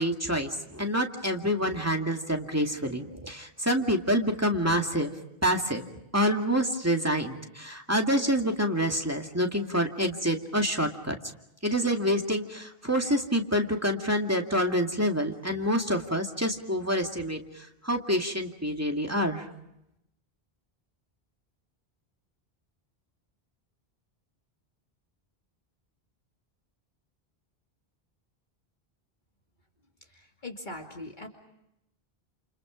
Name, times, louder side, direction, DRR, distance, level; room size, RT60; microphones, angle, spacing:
voice 1, 0.0-5.1 5.4-5.8 6.1-11.2 11.6-19.5, equal, 15° right, 3 dB, 2.3 m, -27 dB
voice 2, 30.1-31.3, left 2 dB, 50° left, 2 dB, 2.6 m, -41 dB
30.0 x 29.0 x 5.1 m, 0.83 s
omnidirectional pair, 1.0 m